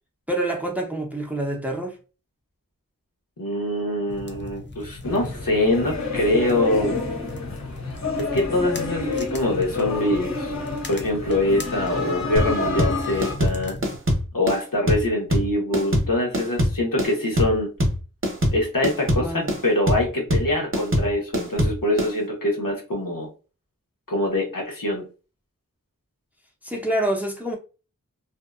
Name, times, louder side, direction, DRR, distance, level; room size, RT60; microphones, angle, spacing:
voice 1, 0.3-2.0 19.2-19.5 26.6-27.6, right 1 dB, 5° right, 0.6 m, -26 dB
voice 2, 3.4-6.9 8.2-10.5 10.9-13.8 14.3-17.7 18.5-23.3 24.1-25.0, left 1 dB, 75° left, 1.1 m, -24 dB
sound 1, 4.1-14.0, left 2 dB, 35° left, 0.5 m, -37 dB
sound 2, 5.0-13.3, left 3 dB, 55° left, 1.0 m, -29 dB
sound 3, 12.4-22.1, equal, 35° right, 0.8 m, -23 dB
2.7 x 2.2 x 2.3 m
wide cardioid pair, 45°, 34 cm